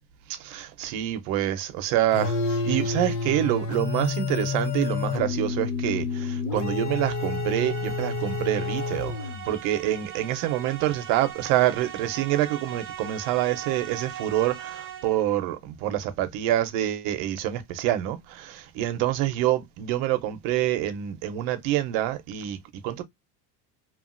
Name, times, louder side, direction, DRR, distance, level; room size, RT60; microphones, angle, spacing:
voice 1, 0.4-9.1 9.5-22.6 22.8-23.0, right 13 dB, 70° right, 0.8 m, -26 dB
sound 1, 2.1-9.6, left 4 dB, 90° left, 1.0 m, -29 dB
sound 2, 6.9-15.3, right 10 dB, 30° right, 0.5 m, -40 dB
3.0 x 2.4 x 2.4 m
cardioid pair, 165°, 41 cm